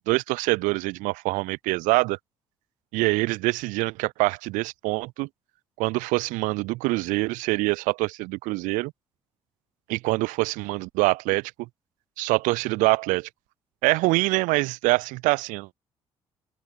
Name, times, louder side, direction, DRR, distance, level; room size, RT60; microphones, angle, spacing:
voice 1, 0.1-2.2 2.9-5.3 5.8-8.9 9.9-11.5 12.2-13.3 13.8-15.7, right 23 dB, 65° right, 0.5 m, -25 dB
figure-of-eight pair, 45°, 14 cm